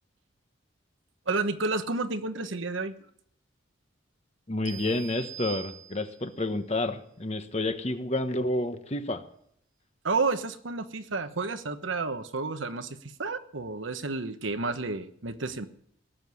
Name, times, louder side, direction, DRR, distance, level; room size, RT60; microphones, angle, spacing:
voice 1, 1.3-2.9 10.0-15.7, right 3 dB, 80° right, 10 dB, 1.2 m, -31 dB
voice 2, 4.5-9.2, left 2 dB, 30° left, 8 dB, 1.2 m, -30 dB
sound 1, 4.7-6.4, right 12 dB, 50° right, 0.8 m, -43 dB
18.0 x 7.6 x 9.7 m, 0.68 s
head